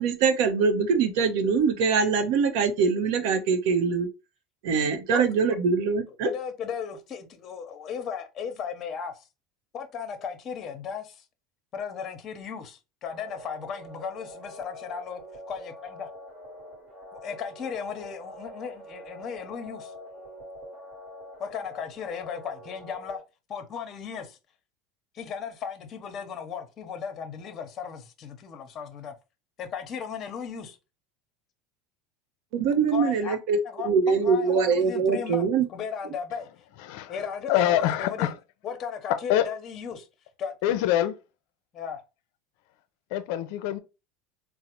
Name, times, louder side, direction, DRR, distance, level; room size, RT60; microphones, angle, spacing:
voice 1, 0.0-4.1 4.6-6.3 32.5-35.6, right 5 dB, 70° right, 0.6 m, -23 dB
voice 2, 6.2-9.3 9.7-11.2 11.7-15.2 15.5-16.1 17.2-19.9 21.4-23.2 23.5-24.4 25.1-29.1 29.6-30.8 32.9-33.4 33.6-33.9 34.2-36.5 37.1-38.3 38.6-40.1 40.4-40.5 41.7-42.0, left 7 dB, 35° left, 0.7 m, -35 dB
sound 1, 13.1-23.2, equal, 30° right, 1.2 m, -45 dB
voice 3, 36.8-38.4 39.3-39.5 40.6-41.2 43.1-43.8, left 12 dB, 70° left, 0.4 m, -25 dB
3.9 x 2.0 x 2.9 m
supercardioid pair, 130°, 0 cm